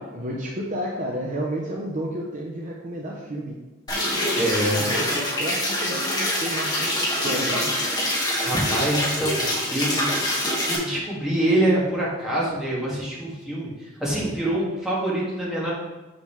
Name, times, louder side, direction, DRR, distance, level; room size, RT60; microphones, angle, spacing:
voice 1, 0.1-3.6 3.9-7.8, equal, 40° right, -2 dB, 0.8 m, -32 dB
sound 1, 3.9-10.8, left 1 dB, 20° left, 1.7 m, -25 dB
sound 2, 4.1-8.1, left 2 dB, 60° left, 2.3 m, -41 dB
voice 2, 4.4-4.9 8.4-10.2 10.6-15.7, right 1 dB, 5° right, -7 dB, 2.1 m, -25 dB
7.1 x 6.8 x 3.3 m, 1.1 s
head